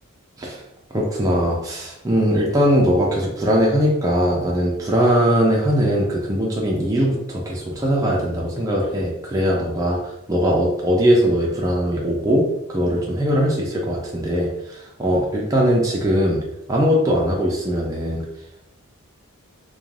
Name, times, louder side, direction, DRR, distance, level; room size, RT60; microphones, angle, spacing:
voice 1, 0.9-16.4 16.7-18.2, equal, 15° right, -3 dB, 0.4 m, -20 dB
2.4 x 2.1 x 3.1 m, 0.85 s
head